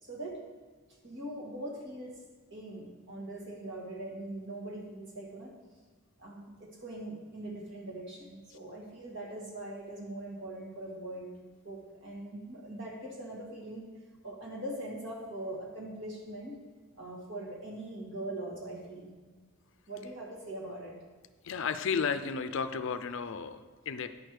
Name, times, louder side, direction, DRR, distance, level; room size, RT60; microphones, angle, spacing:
voice 1, 0.0-0.4 1.0-2.2 2.5-5.5 6.2-14.0 14.2-16.6 17.0-19.2 19.9-21.0, right 1 dB, 55° right, -2 dB, 1.9 m, -42 dB
voice 2, 21.4-24.1, left 6 dB, 60° left, 10 dB, 0.5 m, -33 dB
9.6 x 6.4 x 4.8 m, 1.4 s
head